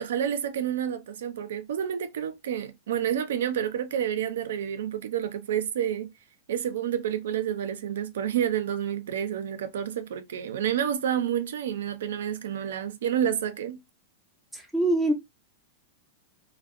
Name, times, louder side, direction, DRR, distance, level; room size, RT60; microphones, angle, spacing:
voice 1, 0.0-6.1 6.5-13.8, right 9 dB, 80° right, 0.4 m, -29 dB
voice 2, 14.5-15.1, right 1 dB, ahead, 0.4 m, -24 dB
2.6 x 2.1 x 2.4 m
supercardioid pair, 175°, 0 cm